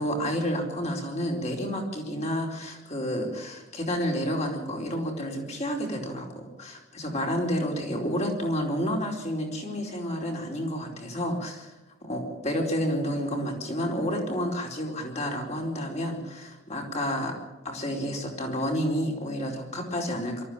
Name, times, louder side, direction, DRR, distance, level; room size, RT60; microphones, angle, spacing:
voice 1, 0.0-11.7 12.0-17.4 17.6-20.4, equal, 35° left, 1 dB, 4.5 m, -30 dB
23.0 x 14.0 x 8.8 m, 1.0 s
head